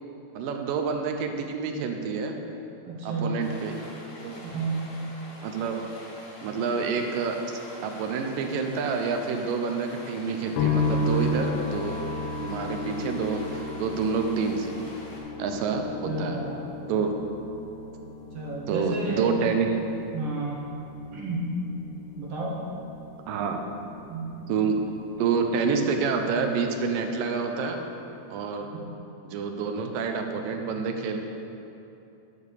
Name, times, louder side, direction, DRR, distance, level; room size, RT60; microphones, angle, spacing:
voice 1, 0.4-2.4 3.0-3.8 4.2-4.4 5.4-5.8 6.4-12.0 12.4-14.7 15.4-16.4 16.9-17.1 18.7-19.8 23.3-23.6 24.5-24.8 25.2-27.8 28.3-28.7 29.2-31.2, right 5 dB, 85° right, 4 dB, 2.5 m, -28 dB
voice 2, 2.8-3.4 4.4-4.9 16.0-16.7 18.3-19.4 20.1-20.6 21.1-21.5 22.2-22.6 24.1-24.5, right 2 dB, 55° right, -4 dB, 2.1 m, -31 dB
Stream, 3.4-15.2, left 1 dB, 50° left, 2.5 m, -46 dB
sound 1, 10.6-25.8 26.1-26.9, left 3 dB, 75° left, 2.4 m, -34 dB
10.5 x 7.1 x 6.5 m, 2.9 s
omnidirectional pair, 3.9 m